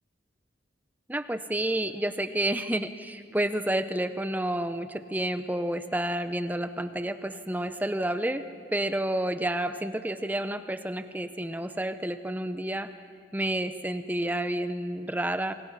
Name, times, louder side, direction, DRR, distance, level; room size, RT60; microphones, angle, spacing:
voice 1, 1.1-12.9 13.3-15.5, right 1 dB, 10° right, 11 dB, 0.7 m, -30 dB
27.5 x 25.0 x 5.8 m, 2.4 s
head